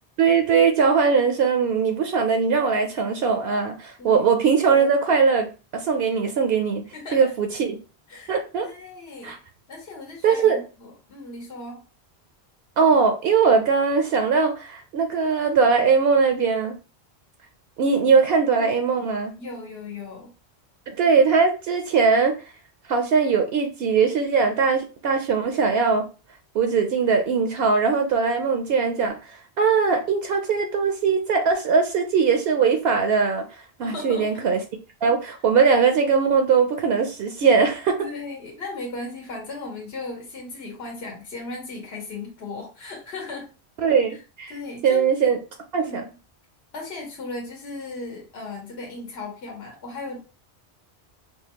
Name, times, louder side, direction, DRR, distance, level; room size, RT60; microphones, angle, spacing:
voice 1, 0.2-5.5 5.7-6.8 7.1-7.8 8.3-8.7 9.2-9.4 10.2-10.6 12.8-16.7 17.8-19.3 20.9-22.3 22.9-26.0 26.5-34.6 35.0-38.1 43.8-44.5 44.8-45.4 45.7-46.0, right 5 dB, 75° right, 5 dB, 0.8 m, -20 dB
voice 2, 6.9-7.3 8.1-8.4 8.6-9.3 9.7-11.8 17.8-18.2 19.4-20.3 33.8-34.3 38.0-43.5 44.5-45.1 45.7-46.1 46.7-50.2, left 3 dB, 75° left, 0 dB, 1.3 m, -36 dB
4.9 x 2.2 x 2.9 m, 0.33 s
omnidirectional pair, 1.1 m